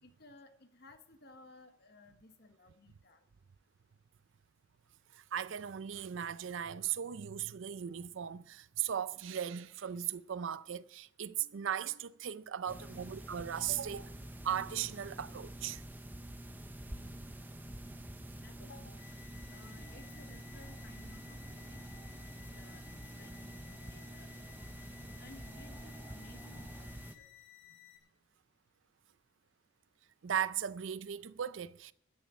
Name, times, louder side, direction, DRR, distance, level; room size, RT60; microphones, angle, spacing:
voice 1, 0.0-3.2 12.7-13.1 13.8-14.1 18.2-19.0 19.5-22.1 22.5-24.7 25.2-27.3, left 2 dB, 50° left, 1.1 m, -58 dB
voice 2, 5.1-14.1 14.4-15.8 30.2-31.9, right 9 dB, 70° right, 0.4 m, -37 dB
sound 1, 12.7-27.2, right 1 dB, 10° right, 0.7 m, -47 dB
sound 2, 19.0-28.0, left 15 dB, 85° left, 3.4 m, -58 dB
sound 3, 19.7-26.9, right 1 dB, 10° left, 3.5 m, -60 dB
13.0 x 7.2 x 9.7 m
head